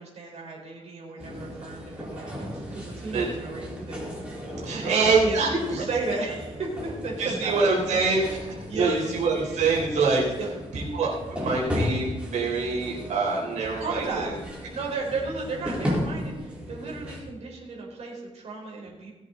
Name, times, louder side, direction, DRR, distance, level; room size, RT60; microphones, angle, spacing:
voice 1, 0.0-4.4 4.8-8.0 8.7-8.9 10.4-10.5 13.8-14.3 14.7-19.1, right 3 dB, 60° right, -3 dB, 4.6 m, -34 dB
sound 1, 1.2-17.2, equal, 10° right, 4.2 m, -35 dB
voice 2, 4.6-5.5 7.2-10.3 10.7-14.3, right 4 dB, 90° right, -4 dB, 4.3 m, -25 dB
19.5 x 8.3 x 4.0 m, 1.2 s
cardioid pair, 120°, 12 cm